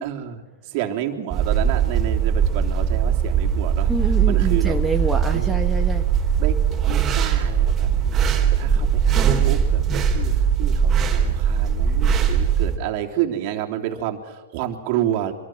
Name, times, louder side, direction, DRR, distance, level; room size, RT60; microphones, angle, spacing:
voice 1, 0.0-4.8 5.3-5.5 6.4-6.6 6.9-8.1 8.6-15.3, right 11 dB, 45° right, 2 dB, 3.4 m, -29 dB
sound 1, 1.3-12.8, right 7 dB, 20° right, 4.1 m, -20 dB
voice 2, 3.9-6.1, right 2 dB, 5° right, 2 dB, 1.6 m, -26 dB
26.0 x 23.5 x 6.3 m, 1.2 s
hypercardioid pair, 125°, 0 cm